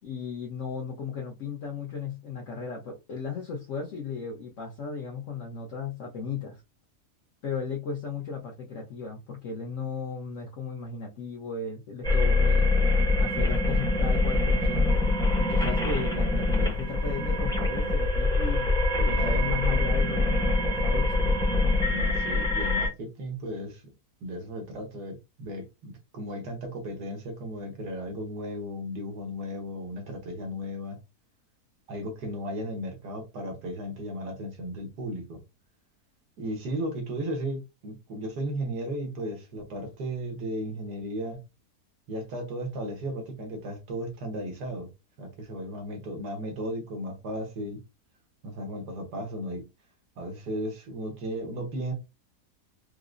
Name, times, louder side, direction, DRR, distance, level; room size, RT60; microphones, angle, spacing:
voice 1, 0.0-6.6 7.4-12.7 13.2-14.9 15.4-18.7 19.0-21.2, left 5 dB, 60° left, 0.9 m, -35 dB
sound 1, 12.0-22.9, left 2 dB, 5° left, 0.5 m, -24 dB
voice 2, 19.0-19.7 21.9-23.8 24.2-31.0 31.9-35.4 36.4-41.4 42.1-44.9 45.2-47.8 48.4-49.7 50.2-51.9, equal, 85° right, 1.7 m, -35 dB
4.7 x 2.0 x 2.5 m
omnidirectional pair, 1.7 m